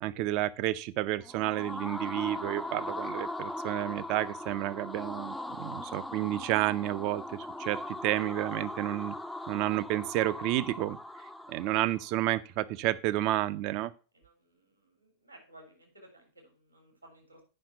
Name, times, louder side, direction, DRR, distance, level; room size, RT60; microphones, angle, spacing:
voice 1, 0.0-9.2 9.5-11.0 11.5-13.9, right 15 dB, 45° right, 15 dB, 0.5 m, -31 dB
sound 1, 1.2-12.1, left 1 dB, 5° left, 0.5 m, -39 dB
voice 2, 14.1-17.4, right 1 dB, 85° right, 3 dB, 3.4 m, -57 dB
8.7 x 5.7 x 5.6 m, 0.34 s
figure-of-eight pair, 90°, 0 cm